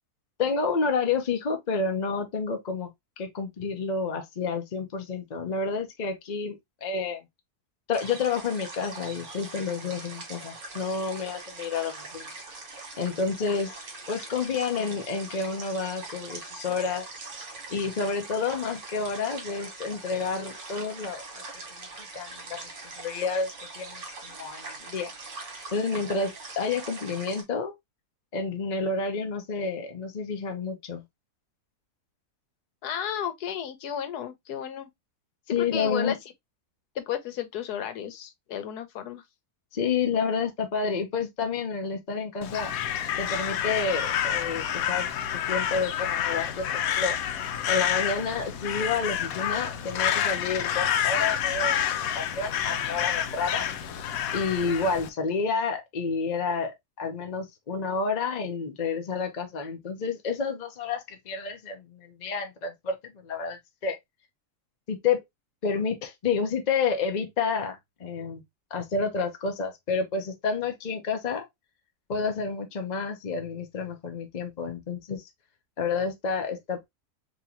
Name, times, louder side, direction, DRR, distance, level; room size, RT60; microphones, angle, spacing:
voice 1, 0.4-2.9 3.2-7.2 7.9-12.3 13.0-17.1 17.7-21.2 21.8-21.9 22.1-23.5 23.8-25.1 25.7-27.7 28.3-31.0 35.5-36.2 39.7-42.7 43.2-47.1 47.7-51.8 52.1-53.7 54.3-64.0 64.9-65.2 65.6-68.4 68.7-71.5 72.1-75.3 75.8-76.9, left 5 dB, 45° left, 0.6 m, -30 dB
sound 1, 7.9-27.4, right 3 dB, 55° right, 1.4 m, -42 dB
voice 2, 32.8-34.9 35.5-36.2 36.9-39.2, left 9 dB, 90° left, 1.3 m, -33 dB
Crow, 42.4-55.1, left 9 dB, 70° left, 1.0 m, -28 dB
3.7 x 3.0 x 2.8 m
omnidirectional pair, 1.6 m